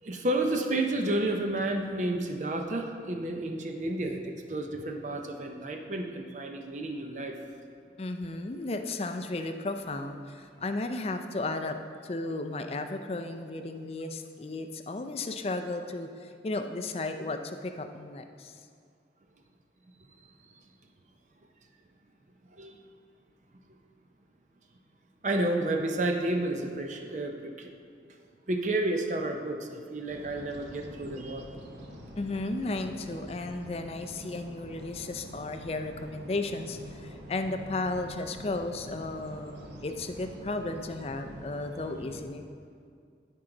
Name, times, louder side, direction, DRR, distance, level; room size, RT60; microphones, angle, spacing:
voice 1, 0.0-7.4 22.5-22.8 25.2-27.7 28.5-31.5, right 1 dB, 40° right, 3 dB, 0.6 m, -31 dB
voice 2, 8.0-11.8 12.0-18.6 32.2-42.4, left 2 dB, 35° left, 7 dB, 0.4 m, -34 dB
sound 1, 30.1-42.2, equal, 75° right, 1.0 m, -46 dB
13.5 x 4.6 x 3.8 m, 2.2 s
head